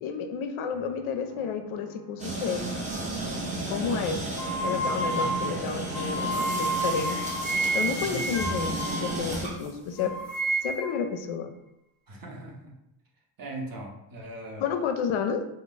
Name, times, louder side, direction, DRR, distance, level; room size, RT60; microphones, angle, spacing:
voice 1, 0.0-2.7 3.7-4.2 4.6-7.2 7.7-10.1 10.6-11.5 14.6-15.4, left 6 dB, 70° left, 7 dB, 0.5 m, -31 dB
sound 1, 0.7-8.7, left 1 dB, 75° right, 0.9 m, -48 dB
sound 2, 2.2-10.1, right 2 dB, 15° right, 0.7 m, -33 dB
sound 3, 4.4-9.7 10.0-11.0, right 2 dB, ahead, 0.3 m, -30 dB
voice 2, 7.9-8.2 12.1-12.7 13.4-14.6, right 1 dB, 45° right, 0 dB, 0.8 m, -39 dB
2.3 x 2.2 x 3.8 m, 0.86 s
cardioid pair, 75°, 50 cm